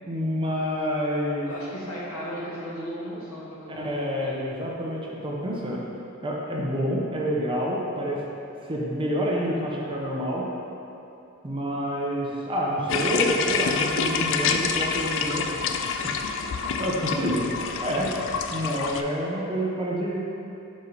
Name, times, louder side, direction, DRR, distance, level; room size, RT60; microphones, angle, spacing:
voice 1, 0.1-1.5 3.8-5.8 6.2-8.2 8.7-10.5 11.4-15.8 16.6-17.5 17.8-18.1 18.5-20.2, equal, 25° right, -3 dB, 0.8 m, -28 dB
voice 2, 1.5-4.4 19.3-19.5, equal, 80° left, -6 dB, 1.5 m, -36 dB
sound 1, 12.9-19.0, left 6 dB, 60° left, 0.4 m, -27 dB
5.2 x 4.9 x 4.1 m, 2.7 s
head